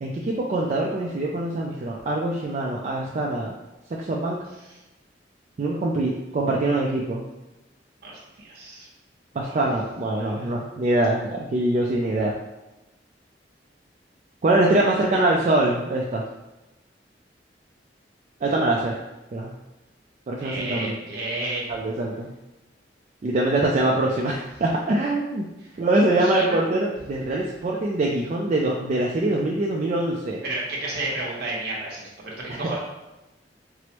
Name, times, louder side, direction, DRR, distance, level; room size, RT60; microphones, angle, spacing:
voice 1, 0.0-3.5 4.0-4.4 5.6-7.2 9.3-12.3 14.4-16.2 18.4-19.0 19.3-19.5 20.3-20.9 21.7-22.3 23.2-25.5 25.8-30.4 32.5-32.8, right 2 dB, 40° right, -2 dB, 0.3 m, -23 dB
voice 2, 8.0-8.9 9.4-9.6 10.2-10.5 14.8-15.3 20.4-21.6 25.9-26.6 30.4-32.8, right 2 dB, 60° right, -4 dB, 1.0 m, -32 dB
4.6 x 2.0 x 2.9 m, 1.0 s
head